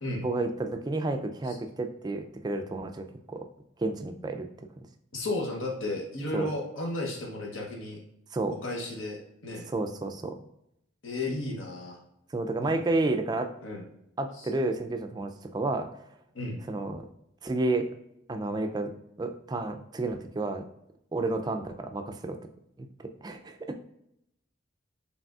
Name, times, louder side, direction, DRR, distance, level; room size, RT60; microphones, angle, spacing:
voice 1, 0.2-3.5 3.8-4.5 6.3-6.5 8.3-8.6 9.7-10.4 12.3-13.5 14.2-15.9 16.7-17.1 17.4-17.8 18.3-18.9 19.2-20.7 21.1-22.4 22.8-22.9 23.2-23.8, right 2 dB, 20° right, 6 dB, 0.3 m, -31 dB
voice 2, 5.1-8.0 8.6-9.2 9.4-9.6 11.0-12.0 12.6-12.9 13.6-13.8 14.4-14.5 16.3-16.6, left 2 dB, 85° left, 0 dB, 0.9 m, -33 dB
4.9 x 3.3 x 2.4 m, 0.79 s
head